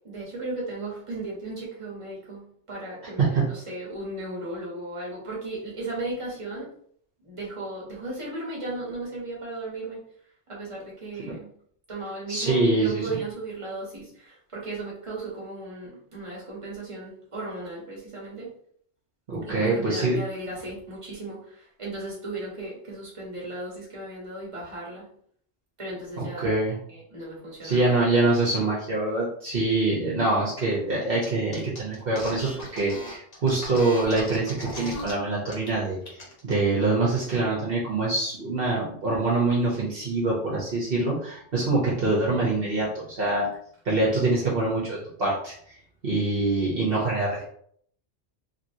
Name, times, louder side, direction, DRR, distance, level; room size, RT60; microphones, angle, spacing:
voice 1, 0.0-6.7 7.2-10.0 10.5-11.5 11.9-18.5 19.4-25.1 25.8-26.6 26.9-27.9, right 2 dB, 25° right, -4 dB, 1.2 m, -36 dB
voice 2, 12.3-13.2 19.3-20.2 26.2-26.8 27.6-43.5 43.8-45.7 46.0-47.5, right 2 dB, 55° right, -6 dB, 1.0 m, -25 dB
sound 1, 31.2-31.3 31.5-35.1 35.5-35.7 36.0-36.5, left 1 dB, 35° left, 0.9 m, -37 dB
2.9 x 2.9 x 2.6 m, 0.62 s
omnidirectional pair, 1.2 m